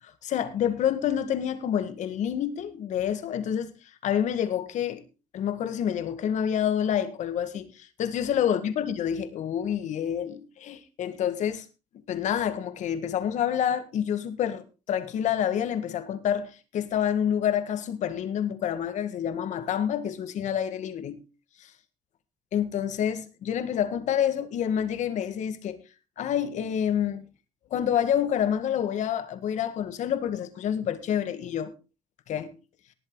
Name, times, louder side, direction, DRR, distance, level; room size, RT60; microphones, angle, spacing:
voice 1, 0.2-3.7 4.0-5.0 5.3-11.7 12.1-21.2 22.5-25.8 26.2-27.2 27.7-31.7 32.3-32.6, left 9 dB, 70° left, 1.9 m, -28 dB
19.0 x 8.0 x 4.0 m
cardioid pair, 95°, 13 cm